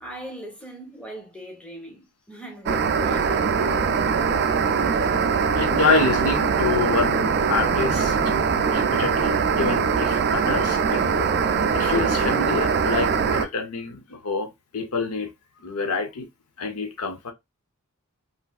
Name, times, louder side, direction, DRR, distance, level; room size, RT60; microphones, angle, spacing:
voice 1, 0.0-3.4, right 1 dB, 5° left, 0.9 m, -39 dB
sound 1, 2.7-13.5, right 6 dB, 50° right, 0.4 m, -22 dB
voice 2, 5.5-11.3 11.7-15.3 15.6-16.3 16.6-17.3, left 4 dB, 75° left, 0.6 m, -27 dB
3.2 x 2.6 x 2.3 m
head